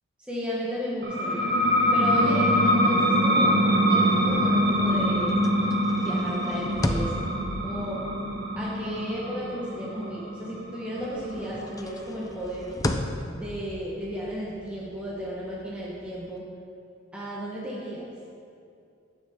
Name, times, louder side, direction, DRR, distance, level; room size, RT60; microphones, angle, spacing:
voice 1, 0.3-1.5 1.9-5.4 6.0-7.3 7.6-8.1 8.6-12.8 13.3-16.4 17.1-18.1, equal, 5° right, -6 dB, 1.1 m, -34 dB
sound 1, 1.0-12.3, equal, 55° right, 1.2 m, -24 dB
sound 2, 4.2-10.7 11.0-16.4, left 1 dB, 15° left, 0.4 m, -36 dB
10.5 x 8.8 x 3.6 m, 2.5 s
head